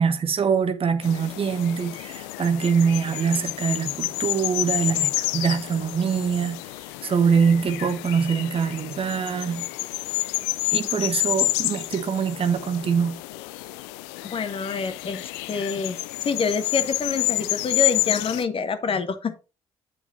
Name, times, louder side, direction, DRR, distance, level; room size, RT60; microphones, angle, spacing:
voice 1, 0.0-6.6 7.0-9.7 10.7-13.2, right 6 dB, 40° right, 1.0 m, -23 dB
sound 1, 1.0-18.4, left 19 dB, 70° left, 0.4 m, -29 dB
voice 2, 14.2-16.0 16.2-19.3, left 5 dB, 40° left, 1.0 m, -27 dB
8.6 x 7.1 x 2.7 m
figure-of-eight pair, 50°, 15 cm